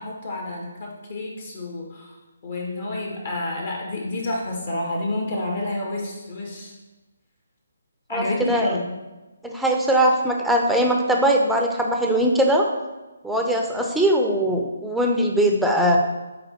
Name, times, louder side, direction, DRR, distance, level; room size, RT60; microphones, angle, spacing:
voice 1, 0.0-2.2 2.4-6.8 8.1-8.8, left 2 dB, 45° left, -1 dB, 1.6 m, -29 dB
voice 2, 8.1-8.7 9.4-12.7 13.2-16.0, right 1 dB, ahead, 1 dB, 0.7 m, -20 dB
7.6 x 4.6 x 4.4 m, 1.1 s
figure-of-eight pair, 145°, 0 cm